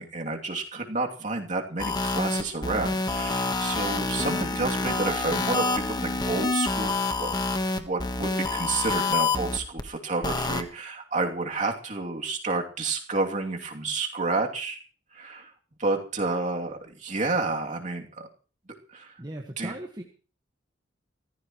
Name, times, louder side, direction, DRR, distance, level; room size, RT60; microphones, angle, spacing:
voice 1, 0.0-6.9 7.2-7.3 7.7-14.8 15.1-15.5 15.8-18.3 18.9-19.1 19.6-19.7, right 3 dB, 40° right, 1 dB, 2.8 m, -30 dB
sound 1, 1.8-9.8 10.2-10.6, left 3 dB, 20° left, 1.3 m, -27 dB
voice 2, 19.2-20.0, right 1 dB, 20° right, 2 dB, 1.5 m, -37 dB
24.5 x 15.0 x 3.1 m, 0.38 s
head